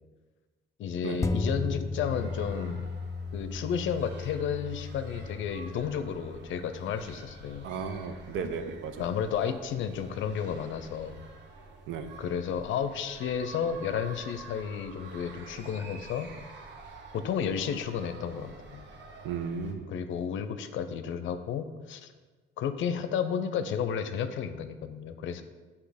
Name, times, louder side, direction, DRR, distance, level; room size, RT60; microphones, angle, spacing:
voice 1, 0.8-2.9 3.3-7.7 9.0-11.2 12.2-16.3 17.1-18.9 19.9-22.1 22.6-25.4, left 7 dB, 75° left, 10 dB, 0.5 m, -32 dB
sound 1, 1.2-10.0 10.5-10.6, left 3 dB, 15° left, 0.3 m, -37 dB
sound 2, 2.0-19.7, right 3 dB, 65° right, 0.9 m, -49 dB
voice 2, 7.6-9.1 11.9-12.2 19.2-19.9, right 5 dB, 85° right, 8 dB, 0.6 m, -35 dB
7.9 x 2.9 x 5.0 m, 1.4 s
cardioid pair, 90°, 20 cm